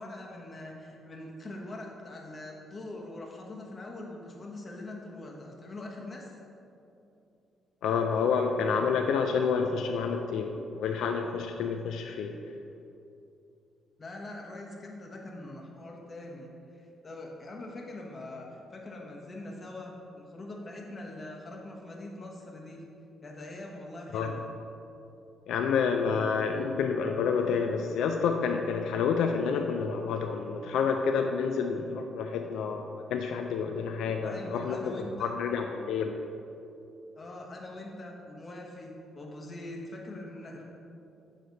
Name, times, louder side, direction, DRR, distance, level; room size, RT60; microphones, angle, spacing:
voice 1, 0.0-6.3 14.0-22.8 23.2-24.4 34.2-35.3 37.1-40.6, left 2 dB, 35° left, -1 dB, 1.2 m, -43 dB
voice 2, 7.8-12.3 24.1-24.3 25.5-36.1, left 5 dB, 80° left, 4 dB, 0.4 m, -29 dB
8.0 x 3.3 x 5.1 m, 2.7 s
cardioid pair, 90°, 0 cm